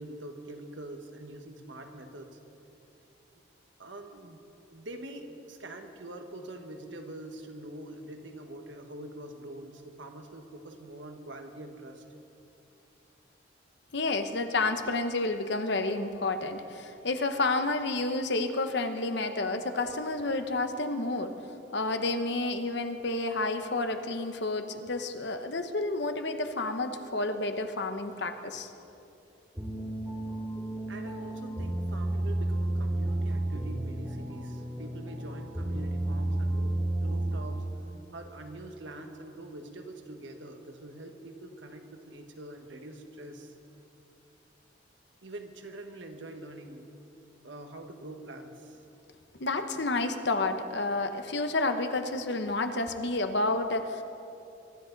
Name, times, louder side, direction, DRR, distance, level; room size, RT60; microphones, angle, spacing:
voice 1, 0.0-2.4 3.8-4.4 4.7-12.0 30.9-37.6 38.1-43.5 45.2-46.9 47.4-48.8, right 1 dB, 70° right, 5 dB, 1.4 m, -44 dB
voice 2, 13.9-21.3 21.7-28.7 49.4-54.0, left 2 dB, 60° left, 7 dB, 0.9 m, -30 dB
sound 1, 29.6-37.7, right 1 dB, 15° right, 2.2 m, -32 dB
23.5 x 13.0 x 4.0 m, 2.8 s
head